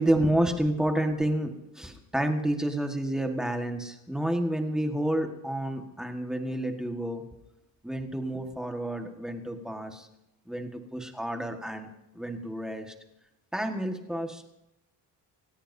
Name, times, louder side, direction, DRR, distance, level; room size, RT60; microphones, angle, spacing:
voice 1, 0.0-7.2 7.8-10.1 10.5-12.9 13.5-14.5, right 1 dB, ahead, 4 dB, 1.5 m, -30 dB
27.0 x 16.0 x 2.7 m, 0.90 s
cardioid pair, 165°, 41 cm